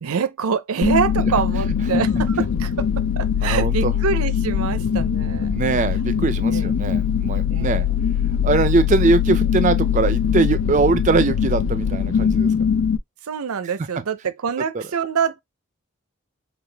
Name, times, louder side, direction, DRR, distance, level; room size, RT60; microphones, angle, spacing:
voice 1, 0.0-5.6 6.5-6.7 7.5-7.8 13.3-15.4, right 6 dB, 80° right, 0.5 m, -25 dB
sound 1, 0.8-13.0, left 7 dB, 75° left, 0.4 m, -21 dB
voice 2, 3.4-3.9 5.5-7.9 8.4-12.5 14.7-14.8, right 3 dB, 35° right, 0.4 m, -21 dB
5.8 x 2.3 x 3.3 m
head